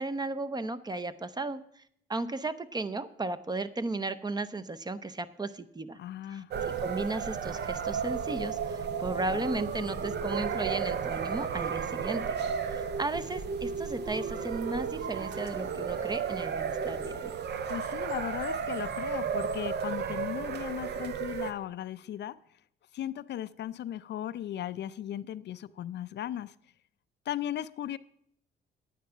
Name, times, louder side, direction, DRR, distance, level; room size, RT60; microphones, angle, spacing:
voice 1, 0.0-1.6 2.1-6.0 6.3-6.4 6.8-12.2 12.7-17.3, right 3 dB, 20° right, 0.6 m, -35 dB
voice 2, 6.0-6.5 17.7-22.4 22.9-26.5 27.3-28.0, left 11 dB, 60° left, 0.4 m, -37 dB
sound 1, 6.5-21.5, right 6 dB, 60° right, 0.8 m, -33 dB
sound 2, 9.0-16.1, right 1 dB, 80° right, 5.4 m, -51 dB
9.4 x 9.1 x 5.6 m
cardioid pair, 90°, 20 cm